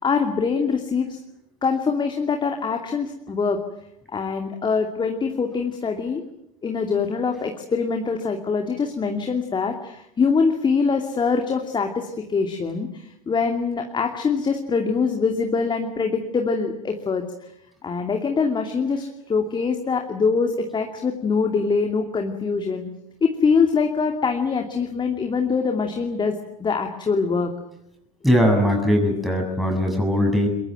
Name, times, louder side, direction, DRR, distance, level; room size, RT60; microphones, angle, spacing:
voice 1, 0.0-1.2 1.6-3.6 4.1-6.2 6.6-17.2 17.8-22.9 23.2-26.3 26.6-27.5, left 5 dB, 25° left, 3 dB, 2.7 m, -23 dB
voice 2, 28.2-30.5, equal, ahead, 2 dB, 7.3 m, -20 dB
23.0 x 22.0 x 9.3 m, 0.82 s
hypercardioid pair, 90°, 19 cm